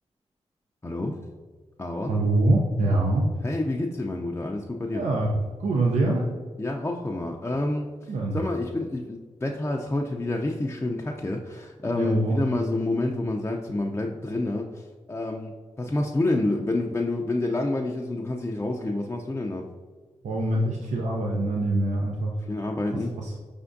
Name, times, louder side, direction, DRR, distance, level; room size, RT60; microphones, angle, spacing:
voice 1, 0.8-1.2 1.8-2.2 3.4-5.0 6.6-19.7 22.5-23.1, left 2 dB, 20° left, 0 dB, 0.4 m, -28 dB
voice 2, 2.1-3.2 4.9-6.2 8.1-8.4 12.0-12.4 20.2-22.3 23.1-23.4, right 2 dB, 80° right, -1 dB, 0.5 m, -24 dB
4.9 x 3.4 x 2.6 m, 1.5 s
cardioid pair, 50°, 12 cm